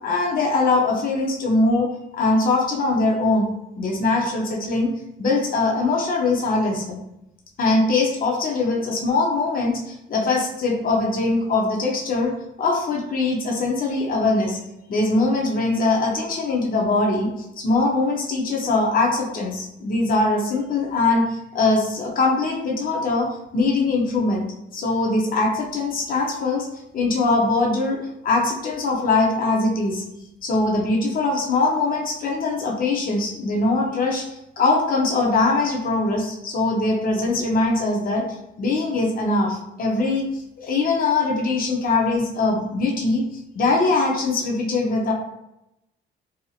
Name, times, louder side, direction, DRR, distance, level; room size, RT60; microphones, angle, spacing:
voice 1, 0.0-3.5 3.8-4.9 5.2-7.0 7.6-12.3 12.6-14.6 14.9-17.3 17.6-24.4 24.7-26.7 26.9-28.0 28.2-30.0 30.4-34.3 34.6-38.2 38.6-43.2 43.5-45.1, left 3 dB, 45° left, -1 dB, 0.7 m, -22 dB
2.7 x 2.7 x 2.4 m, 0.87 s
cardioid pair, 90°, 20 cm